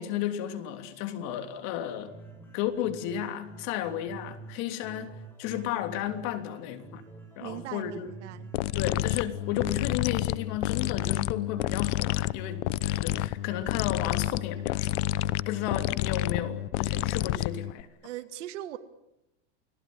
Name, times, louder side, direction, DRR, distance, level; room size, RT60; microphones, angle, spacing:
voice 1, 0.0-2.1 2.5-7.0 7.4-8.1 8.8-15.0 15.4-17.9, left 11 dB, 50° left, 3.2 m, -33 dB
sound 1, 2.1-10.1, right 3 dB, 5° left, 7.4 m, -48 dB
voice 2, 7.4-8.5 18.0-18.8, right 14 dB, 80° right, 2.2 m, -39 dB
sound 2, 8.5-17.8, left 16 dB, 70° left, 0.9 m, -29 dB
30.0 x 18.5 x 9.6 m
supercardioid pair, 150°, 35 cm